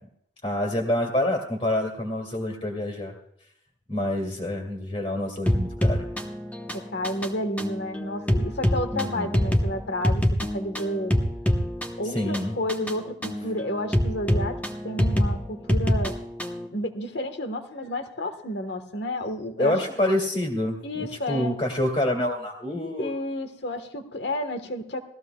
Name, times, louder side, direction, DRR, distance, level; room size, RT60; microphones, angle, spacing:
voice 1, 0.4-3.1 3.9-6.1 8.9-9.3 12.1-12.6 19.6-23.1, left 1 dB, 30° left, -1 dB, 2.2 m, -27 dB
sound 1, 5.5-16.7, equal, 10° left, 0.9 m, -26 dB
voice 2, 6.7-11.1 12.0-14.6 14.8-16.1 16.7-19.8 20.8-21.6 23.0-25.0, left 1 dB, 65° left, 7 dB, 1.4 m, -31 dB
19.5 x 15.0 x 2.3 m, 0.76 s
head